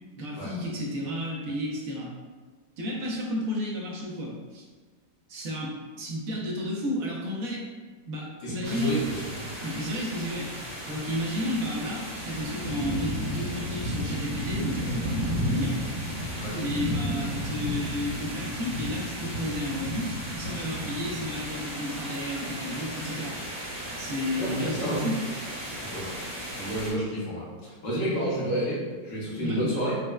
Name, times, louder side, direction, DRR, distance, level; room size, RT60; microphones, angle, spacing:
voice 1, 0.2-2.1 2.8-4.6 5.3-7.6 8.1-9.0 9.6-10.5 10.9-15.8 16.5-23.4 24.0-25.2 29.4-29.6, left 1 dB, 65° right, -3 dB, 0.9 m, -32 dB
voice 2, 8.4-9.5 16.4-16.6 24.4-25.1 25.8-26.1 26.6-29.9, right 1 dB, 80° left, -7 dB, 1.6 m, -30 dB
sound 1, 8.6-26.9, equal, 40° right, 0.9 m, -34 dB
4.3 x 2.1 x 2.2 m, 1.4 s
omnidirectional pair, 1.9 m